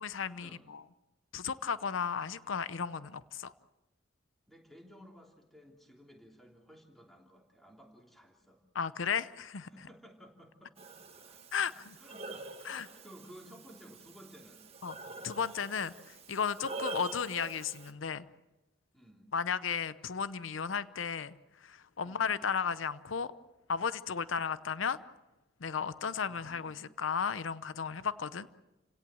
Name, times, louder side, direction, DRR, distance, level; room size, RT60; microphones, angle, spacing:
voice 1, 0.0-0.8 1.3-3.5 8.7-9.7 11.5-11.7 12.6-12.9 14.8-15.0 15.2-18.3 19.3-23.3 23.7-25.0 25.6-28.5, left 6 dB, 90° left, 15 dB, 0.7 m, -34 dB
voice 2, 4.5-8.6 9.5-10.7 11.2-11.4 12.0-14.6 18.9-19.3 22.0-22.4 26.2-26.8, equal, ahead, 1 dB, 3.2 m, -56 dB
Breathing, 10.8-17.9, right 3 dB, 30° right, 1.7 m, -45 dB
29.0 x 17.5 x 7.7 m, 1.0 s
head